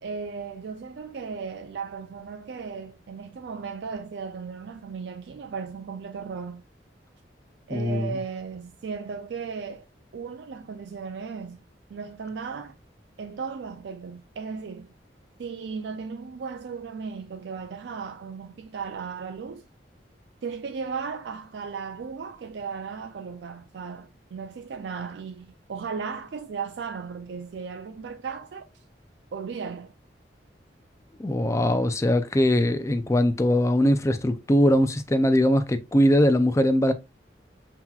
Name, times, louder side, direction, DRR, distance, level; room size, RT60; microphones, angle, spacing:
voice 1, 0.0-6.6 7.7-9.9 10.1-11.6 11.9-12.8 13.2-14.9 15.4-19.6 20.4-28.7 29.3-29.9, right 5 dB, 75° right, 0.4 m, -36 dB
voice 2, 7.7-8.1 31.2-36.9, left 1 dB, 15° left, 0.4 m, -21 dB
5.7 x 2.9 x 2.3 m
head